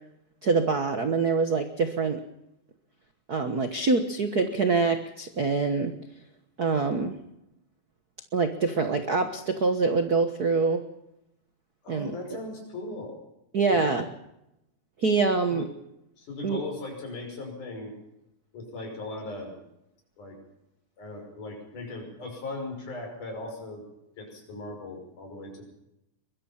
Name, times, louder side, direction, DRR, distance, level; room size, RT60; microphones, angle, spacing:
voice 1, 0.4-2.2 3.3-5.9 6.6-7.1 8.3-10.8 11.9-12.4 13.5-14.1 15.0-15.6 16.4-16.6, right 4 dB, 60° right, 7 dB, 0.9 m, -25 dB
voice 2, 11.8-13.2 13.7-13.9 15.5-15.7 16.2-17.9 18.5-19.6 20.2-20.4 21.0-23.8 24.2-25.6, left 2 dB, 70° left, 2 dB, 7.2 m, -38 dB
23.0 x 21.5 x 5.7 m, 0.86 s
omnidirectional pair, 3.7 m